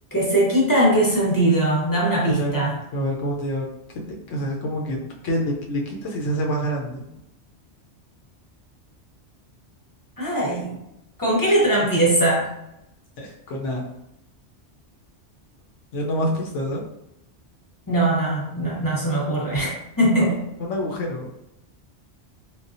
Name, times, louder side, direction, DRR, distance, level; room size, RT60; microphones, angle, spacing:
voice 1, 0.1-2.8 10.2-10.7 11.2-12.5 17.9-20.4, right 1 dB, 20° left, -5 dB, 0.7 m, -20 dB
voice 2, 2.3-2.6 2.9-3.7 3.9-5.0 5.2-7.1 13.2-13.8 15.9-16.8 20.2-21.3, equal, 85° left, -1 dB, 1.0 m, -27 dB
3.5 x 2.3 x 2.6 m, 0.86 s
omnidirectional pair, 1.2 m